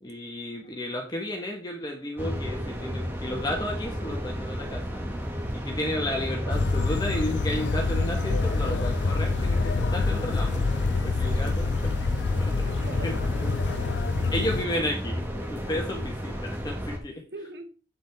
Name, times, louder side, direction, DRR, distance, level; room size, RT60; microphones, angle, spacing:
voice 1, 0.0-5.1 5.5-10.5 11.0-11.9 12.4-12.5 13.0-13.1 13.4-13.5 14.3-15.2 15.5-17.2, left 1 dB, 25° left, 1 dB, 1.5 m, -33 dB
sound 1, 2.2-17.0, equal, 10° right, 1.7 m, -32 dB
sound 2, 6.5-14.7, left 4 dB, 80° left, 0.5 m, -27 dB
voice 2, 11.0-11.7 12.6-13.9 17.1-17.7, right 2 dB, 65° right, 7 dB, 1.5 m, -44 dB
8.6 x 7.7 x 3.6 m, 0.37 s
head